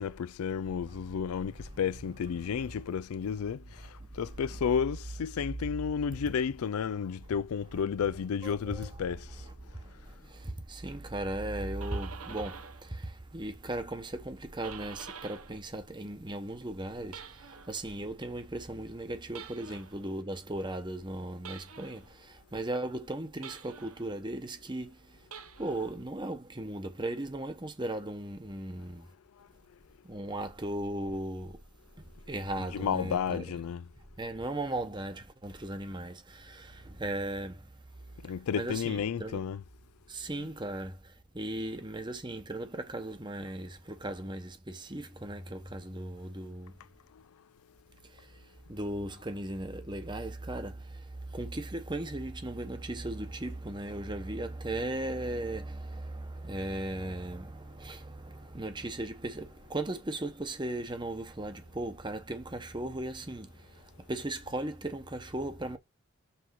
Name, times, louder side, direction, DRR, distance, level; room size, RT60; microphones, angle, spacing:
voice 1, 0.0-3.6 4.2-9.3 32.7-33.8 38.2-39.6 40.3-40.4, left 7 dB, 85° left, 0.4 m, -32 dB
voice 2, 1.5-1.8 2.4-2.8 3.8-4.1 8.4-9.0 9.3-25.2 25.6-29.1 30.0-31.6 32.0-33.4 34.2-37.8 38.1-38.2 38.5-39.5 40.1-46.8 48.0-48.4 48.7-65.8, right 1 dB, 20° right, 1.0 m, -37 dB
sound 1, 11.5-12.9 13.2-15.6 15.9-17.8 19.3-20.0 21.4-22.1 23.4-24.1 25.2-26.0, right 6 dB, 80° right, 1.0 m, -47 dB
5.9 x 4.2 x 6.1 m
head